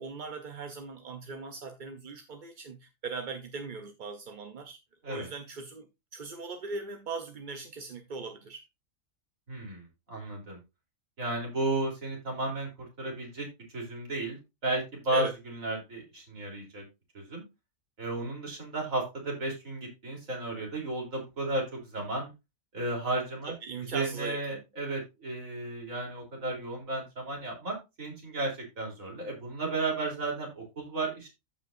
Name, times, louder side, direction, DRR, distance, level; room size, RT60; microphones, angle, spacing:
voice 1, 0.0-4.8 5.0-5.9 6.1-8.7 15.1-15.3 23.4-24.6, right 4 dB, 45° right, 0.7 m, -39 dB
voice 2, 9.5-10.6 11.2-13.5 13.7-16.8 17.1-17.4 18.0-22.3 22.7-23.5 23.9-31.3, right 2 dB, 70° right, 3.8 m, -33 dB
14.5 x 5.2 x 2.5 m
omnidirectional pair, 1.4 m